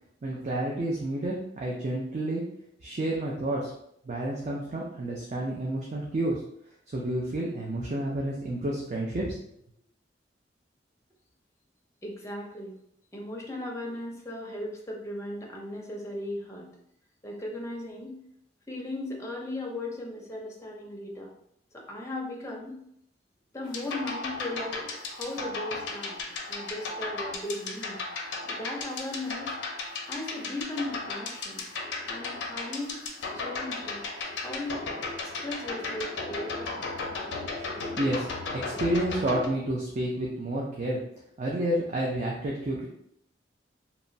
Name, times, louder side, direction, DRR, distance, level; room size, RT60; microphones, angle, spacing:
voice 1, 0.2-2.4 2.8-3.7 4.1-6.4 6.9-9.4 37.7-41.0 41.4-42.9, right 1 dB, 40° right, -3 dB, 0.4 m, -30 dB
voice 2, 12.0-12.7 13.1-16.7 17.2-18.2 18.7-21.3 21.7-22.8 23.5-24.8 25.1-28.0 28.5-29.5 30.1-31.7 32.1-33.0 33.3-34.0 34.4-34.8 35.2-36.9, left 1 dB, 15° left, -1 dB, 0.5 m, -37 dB
sound 1, 23.6-39.5, left 3 dB, 75° left, 0.5 m, -35 dB
3.0 x 2.2 x 2.6 m, 0.72 s
head